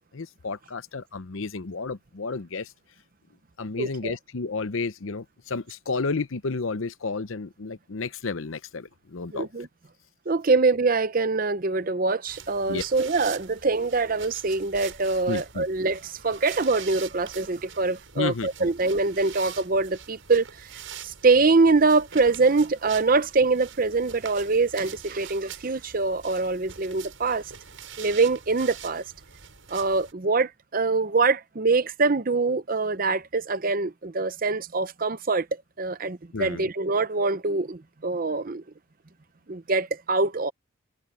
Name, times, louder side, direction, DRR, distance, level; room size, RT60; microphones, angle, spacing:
voice 1, 0.1-2.7 3.6-9.5 12.7-12.8 15.3-15.7 18.2-18.7 36.3-36.6, left 4 dB, 75° left, 0.8 m, -31 dB
voice 2, 3.8-4.1 9.3-9.7 10.3-20.7 21.0-27.4 28.0-29.0 29.7-35.5 35.8-38.6 39.5-40.5, right 3 dB, 40° right, 0.7 m, -24 dB
sound 1, 12.3-30.1, right 8 dB, 70° right, 7.4 m, -44 dB
head